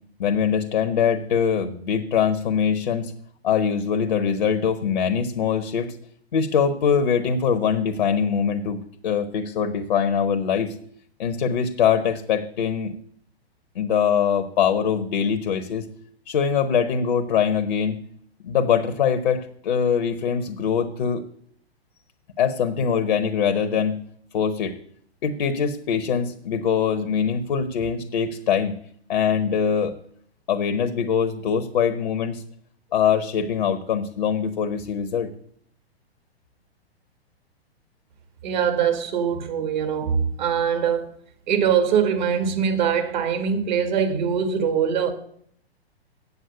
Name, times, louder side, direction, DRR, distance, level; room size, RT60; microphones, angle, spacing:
voice 1, 0.2-3.1 3.4-6.0 6.3-8.8 9.0-10.7 11.2-12.9 13.7-15.8 16.3-18.0 18.4-21.3 22.4-24.0 24.3-24.8 25.2-28.7 29.1-29.9 30.5-32.4 32.9-35.3, left 7 dB, 50° left, 8 dB, 1.0 m, -23 dB
voice 2, 38.4-41.0 41.5-45.1, right 7 dB, 45° right, 7 dB, 1.8 m, -22 dB
8.2 x 7.7 x 8.0 m, 0.65 s
figure-of-eight pair, 110°, 32 cm